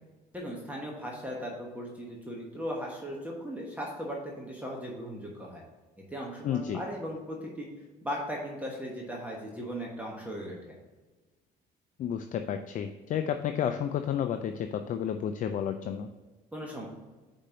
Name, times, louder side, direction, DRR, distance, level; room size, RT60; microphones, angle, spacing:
voice 1, 0.3-5.6 6.1-7.7 8.0-10.7 16.5-16.9, equal, 10° right, -2 dB, 1.1 m, -37 dB
voice 2, 6.4-6.8 12.0-16.1, left 8 dB, 50° left, 7 dB, 0.4 m, -31 dB
5.3 x 4.3 x 5.1 m, 1.3 s
cardioid pair, 110°, 17 cm